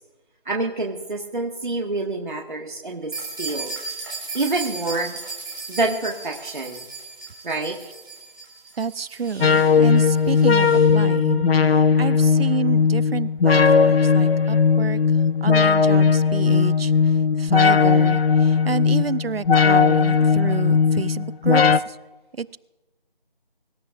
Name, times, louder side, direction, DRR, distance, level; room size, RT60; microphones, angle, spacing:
voice 1, 0.4-3.1 3.4-3.7 4.3-5.2 5.7-6.8 7.4-7.8, right 2 dB, 55° right, 0 dB, 1.7 m, -27 dB
sound 1, 3.1-10.9, right 3 dB, 25° right, 3.1 m, -36 dB
voice 2, 8.8-15.0 15.4-16.9 17.4-22.0 22.4-22.6, right 6 dB, 85° right, 19 dB, 0.7 m, -29 dB
sound 2, 9.4-21.8, left 5 dB, 85° left, 0.7 m, -18 dB
24.5 x 13.5 x 2.5 m, 1.1 s
figure-of-eight pair, 175°, 29 cm